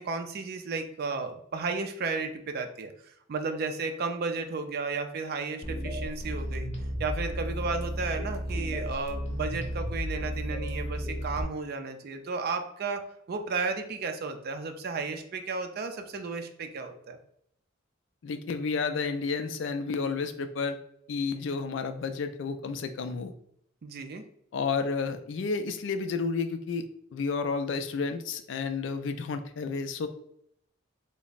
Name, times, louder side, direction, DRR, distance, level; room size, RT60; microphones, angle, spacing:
voice 1, 0.0-6.7 7.0-13.0 13.3-17.2 23.8-24.2, right 4 dB, 55° right, 6 dB, 0.4 m, -33 dB
sound 1, 5.6-11.4, equal, 35° left, 0.7 m, -33 dB
voice 2, 18.2-20.8 21.1-23.3 24.5-30.1, left 4 dB, 70° left, 8 dB, 0.4 m, -31 dB
3.4 x 2.0 x 3.9 m, 0.71 s
head